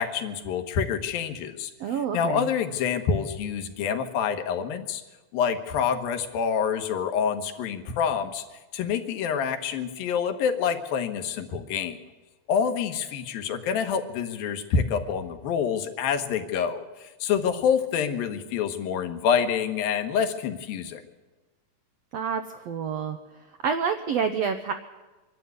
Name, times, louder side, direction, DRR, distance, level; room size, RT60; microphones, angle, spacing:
voice 1, 0.0-5.0 5.3-8.4 8.7-12.0 12.5-21.0, left 7 dB, 80° left, 8 dB, 3.1 m, -27 dB
voice 2, 1.8-2.5 22.1-23.2 23.6-24.7, right 6 dB, 85° right, 8 dB, 1.4 m, -28 dB
24.5 x 12.0 x 9.5 m, 1.2 s
omnidirectional pair, 4.1 m